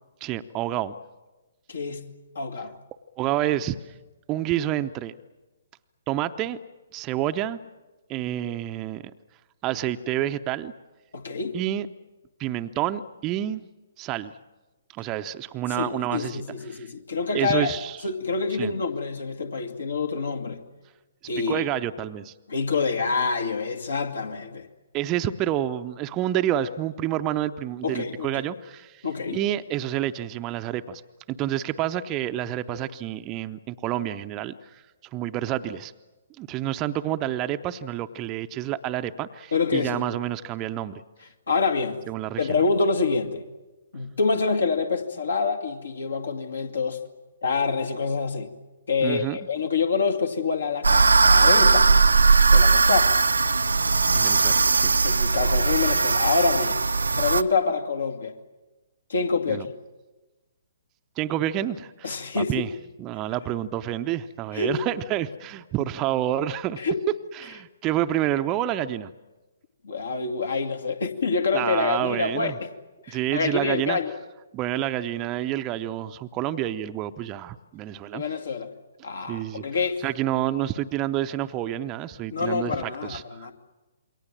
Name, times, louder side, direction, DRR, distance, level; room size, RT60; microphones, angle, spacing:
voice 1, 0.2-0.9 3.2-3.9 4.3-5.1 6.1-6.6 6.9-7.6 8.1-9.1 9.6-10.7 11.5-11.9 12.4-13.6 14.0-14.3 14.9-16.9 17.3-18.0 18.5-18.7 21.5-22.3 24.9-29.0 29.3-31.0 31.3-34.8 35.1-35.9 36.4-41.0 42.1-42.5 49.0-49.4 54.1-55.0 59.5-59.7 61.2-62.7 63.0-66.8 67.4-69.1 71.5-72.6 73.1-74.0 74.5-78.2 79.3-79.6 80.0-83.5, right 12 dB, 25° right, 10 dB, 0.8 m, -28 dB
voice 2, 1.7-2.1 2.4-2.7 11.1-11.6 15.8-17.7 18.0-20.6 21.3-21.6 22.5-24.7 27.8-28.4 29.0-29.4 39.5-40.0 41.5-42.0 42.4-43.4 43.9-47.0 47.4-48.5 48.9-51.9 52.5-53.1 55.0-56.8 57.2-58.4 59.1-59.7 62.0-62.7 64.5-64.8 66.8-67.0 69.8-72.7 73.0-74.1 78.1-78.7 79.0-80.0 82.3-83.5, left 4 dB, 65° left, 6 dB, 2.2 m, -26 dB
sound 1, 50.8-57.4, right 4 dB, 70° right, 0.8 m, -19 dB
28.0 x 22.5 x 7.5 m, 1.1 s
figure-of-eight pair, 125°, 0 cm